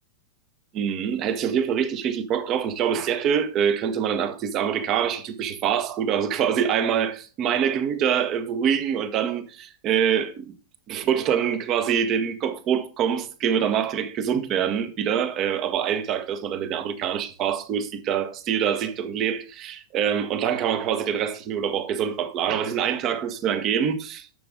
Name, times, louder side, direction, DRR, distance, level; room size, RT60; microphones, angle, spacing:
voice 1, 0.7-10.4 10.9-24.3, right 8 dB, 35° right, 1.4 m, -25 dB
11.0 x 7.0 x 3.8 m
figure-of-eight pair, 90°, 0 cm